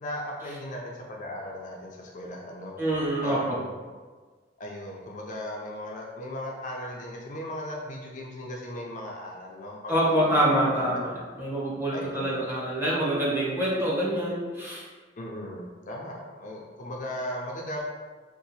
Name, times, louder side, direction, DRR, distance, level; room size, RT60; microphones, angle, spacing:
voice 1, 0.0-2.7 3.2-3.8 4.6-10.2 10.5-11.2 11.9-12.3 15.2-17.8, left 1 dB, 45° left, -2 dB, 0.4 m, -37 dB
voice 2, 2.8-3.6 9.9-11.1 11.4-14.8, right 1 dB, 10° right, -7 dB, 0.8 m, -26 dB
2.8 x 2.4 x 4.0 m, 1.4 s
head